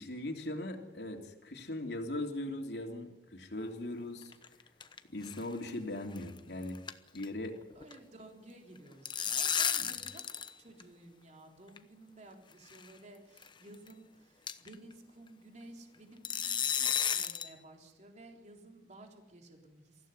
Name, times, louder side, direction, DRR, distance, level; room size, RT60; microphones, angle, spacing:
voice 1, 0.0-4.3 5.1-6.8 7.1-7.6, left 1 dB, 70° left, 3 dB, 3.0 m, -39 dB
sound 1, 4.2-5.0 5.2-5.4 5.7-5.8 6.2-6.4 6.6-7.9 8.8-10.5 10.8-10.9 11.8-11.9 12.7-12.9 13.4-13.5 13.9-14.0 14.5-14.7 16.2-17.5, left 8 dB, 25° left, 1.0 m, -33 dB
voice 2, 7.7-10.2 10.6-20.1, right 2 dB, 40° right, 2 dB, 3.7 m, -54 dB
24.5 x 15.5 x 9.7 m, 1.0 s
head